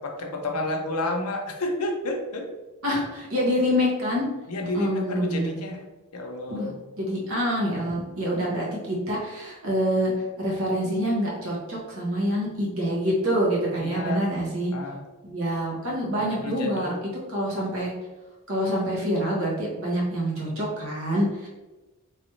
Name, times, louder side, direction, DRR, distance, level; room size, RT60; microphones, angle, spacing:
voice 1, 0.0-2.5 4.5-5.8 6.1-6.7 13.8-14.3 14.7-15.0 16.2-17.0, left 1 dB, 85° left, 2 dB, 0.7 m, -30 dB
voice 2, 2.8-4.3 4.7-5.5 6.5-6.7 7.0-10.1 10.4-14.7 15.2-16.9 17.3-17.9 18.5-21.5, equal, 65° right, -4 dB, 1.2 m, -26 dB
3.3 x 3.1 x 3.0 m, 1.1 s
head